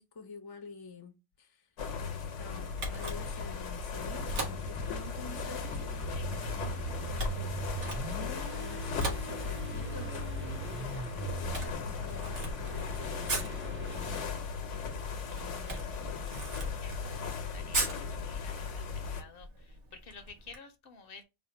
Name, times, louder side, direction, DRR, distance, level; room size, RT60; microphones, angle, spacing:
voice 1, 0.0-1.7 2.0-6.0 7.3-7.6 8.1-14.5 15.3-16.6, left 4 dB, 25° left, 0.5 m, -49 dB
sound 1, 1.8-19.2, left 5 dB, 80° left, 1.2 m, -37 dB
Camera, 2.7-20.6, right 2 dB, 70° right, 1.6 m, -41 dB
sound 2, 4.0-14.2, right 5 dB, 10° right, 0.7 m, -42 dB
voice 2, 6.1-6.8 16.8-21.2, left 4 dB, 55° left, 0.8 m, -52 dB
4.2 x 2.2 x 4.3 m
omnidirectional pair, 1.2 m